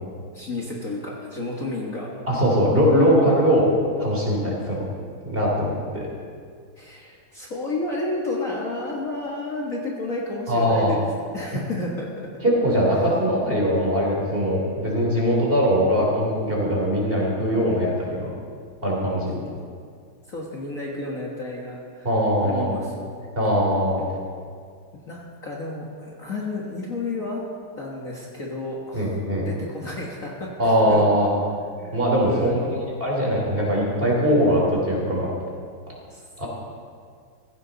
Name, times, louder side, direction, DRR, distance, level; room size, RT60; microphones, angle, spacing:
voice 1, 0.3-2.1 3.1-3.3 6.8-12.1 19.1-19.7 20.3-22.1 22.4-23.1 24.0-24.1 25.0-27.4 27.8-31.0 31.8-32.7 36.1-36.4, left 2 dB, 40° left, -3 dB, 1.8 m, -32 dB
voice 2, 2.3-3.6 4.0-4.8 5.2-6.1 10.5-10.9 12.4-18.3 18.8-19.4 22.0-22.7 23.3-24.0 28.9-29.5 30.6-31.3 31.9-35.3 36.4-36.5, equal, 25° right, -3 dB, 3.4 m, -21 dB
16.0 x 15.5 x 4.0 m, 2.1 s
omnidirectional pair, 2.3 m